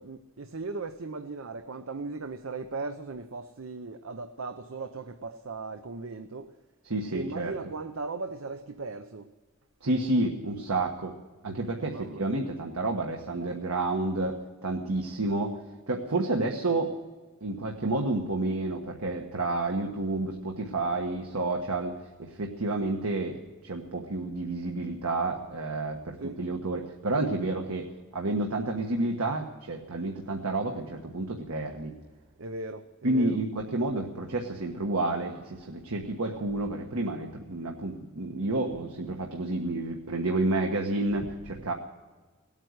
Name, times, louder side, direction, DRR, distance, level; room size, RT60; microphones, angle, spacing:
voice 1, 0.0-6.5 7.1-9.3 11.8-12.4 13.4-13.6 26.2-26.4 32.4-33.4 41.2-41.3 41.6-41.7, right 3 dB, 70° right, 9 dB, 0.7 m, -38 dB
voice 2, 6.8-7.5 9.8-11.1 11.4-15.6 15.9-16.9 17.4-31.9 33.0-41.7, right 2 dB, 90° right, 2 dB, 1.4 m, -30 dB
18.5 x 9.0 x 8.0 m, 1.3 s
head